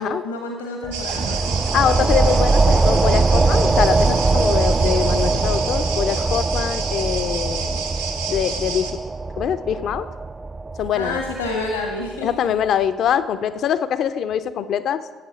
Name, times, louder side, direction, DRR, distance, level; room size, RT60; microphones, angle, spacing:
voice 1, 0.0-1.6 10.9-12.5, left 2 dB, 80° left, 2 dB, 1.2 m, -29 dB
sound 1, 0.8-12.1, right 3 dB, 20° right, 0.3 m, -21 dB
sound 2, 0.9-8.9, right 5 dB, 75° right, 1.0 m, -30 dB
sound 3, 1.1-5.5, right 5 dB, 50° right, 1.3 m, -32 dB
voice 2, 1.7-7.8 8.3-9.0 9.4-10.1 10.8-11.2 12.2-15.0, left 9 dB, 55° left, 13 dB, 0.5 m, -23 dB
11.5 x 8.1 x 5.7 m, 1.5 s
figure-of-eight pair, 45°, 0 cm